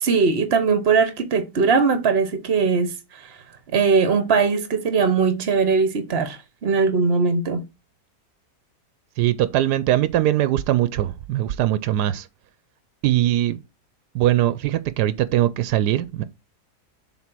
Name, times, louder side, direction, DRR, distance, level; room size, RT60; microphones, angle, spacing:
voice 1, 0.0-3.4 3.7-7.6, right 5 dB, 45° right, 1.0 m, -20 dB
voice 2, 9.2-12.3 13.0-13.6 14.1-16.2, right 13 dB, 90° right, 1.2 m, -21 dB
7.3 x 4.0 x 6.0 m
omnidirectional pair, 1.7 m